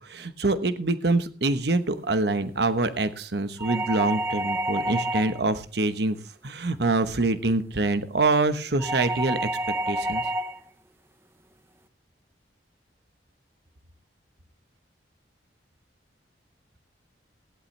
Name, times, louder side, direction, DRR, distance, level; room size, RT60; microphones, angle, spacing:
voice 1, 0.0-6.2 6.4-9.5 9.9-10.2, right 2 dB, 60° right, 11 dB, 1.1 m, -25 dB
sound 1, 3.6-5.5 8.8-10.6, right 1 dB, 15° right, 0.9 m, -29 dB
16.5 x 11.5 x 3.3 m, 0.36 s
head